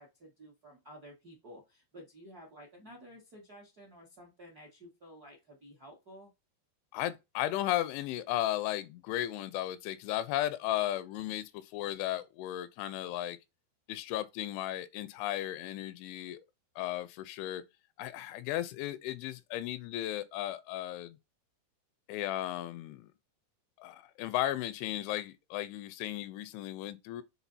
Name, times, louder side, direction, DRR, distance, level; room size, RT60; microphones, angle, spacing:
voice 1, 0.0-6.3, equal, 50° right, 1.0 m, -53 dB
voice 2, 6.9-13.4 13.9-16.4 16.8-17.6 18.0-21.2 22.1-23.1 23.8-27.2, left 13 dB, 85° left, 2.9 m, -35 dB
7.2 x 3.7 x 4.1 m
omnidirectional pair, 5.4 m